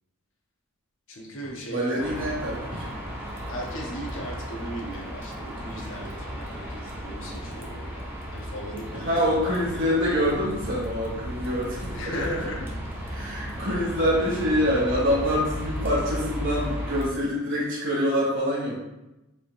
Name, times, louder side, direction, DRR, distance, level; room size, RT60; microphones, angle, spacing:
voice 1, 1.1-2.3 3.5-9.3 9.7-9.9 11.9-12.7, equal, 60° left, -1 dB, 0.7 m, -37 dB
sound 1, 1.4-1.6 2.7-2.9 4.2-4.4 5.7-5.9 7.3-7.5 8.9-9.1 10.6-10.8 11.9-12.0 13.0-13.1, equal, 75° right, 1.4 m, -44 dB
voice 2, 1.7-2.8 8.9-12.3 13.1-18.8, equal, 60° right, -7 dB, 1.4 m, -25 dB
sound 2, 2.0-17.1, equal, 10° right, 0.6 m, -35 dB
4.8 x 2.7 x 3.1 m, 0.95 s
head